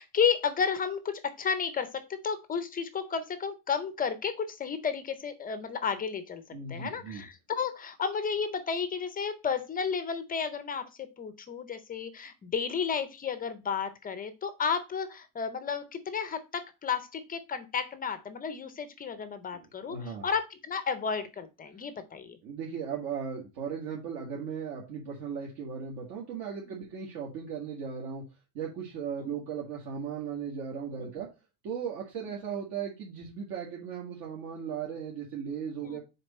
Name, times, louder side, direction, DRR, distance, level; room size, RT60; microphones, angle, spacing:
voice 1, 0.0-6.4 6.7-22.4 31.0-31.1 35.8-36.0, left 6 dB, 20° left, 11 dB, 0.5 m, -32 dB
voice 2, 6.5-7.2 19.5-20.3 22.4-28.2 28.5-31.3 31.6-36.0, right 7 dB, 55° right, -2 dB, 1.9 m, -37 dB
6.6 x 4.3 x 4.2 m, 0.27 s
cardioid pair, 160°, 47 cm